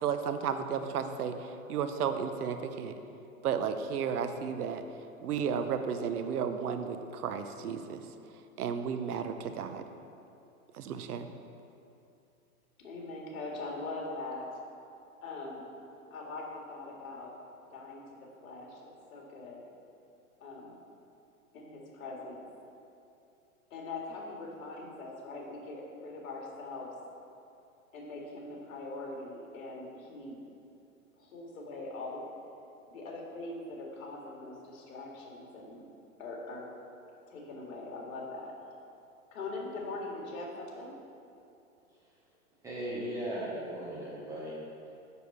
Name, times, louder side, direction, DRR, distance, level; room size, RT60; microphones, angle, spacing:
voice 1, 0.0-2.9 3.4-4.8 5.2-8.0 8.6-9.8 10.7-11.3, right 7 dB, 80° right, 9 dB, 0.8 m, -33 dB
voice 2, 12.8-14.6 15.2-15.6 16.1-17.3 17.7-19.6 20.4-20.8 21.5-22.4 23.7-26.9 27.9-30.4 31.2-32.3 32.9-35.8 36.2-36.7 37.3-38.5 39.3-41.0, left 2 dB, 65° left, -1 dB, 2.1 m, -42 dB
voice 3, 42.6-44.6, right 1 dB, 10° right, -6 dB, 0.5 m, -37 dB
7.0 x 6.3 x 5.5 m, 2.6 s
hypercardioid pair, 145°, 44 cm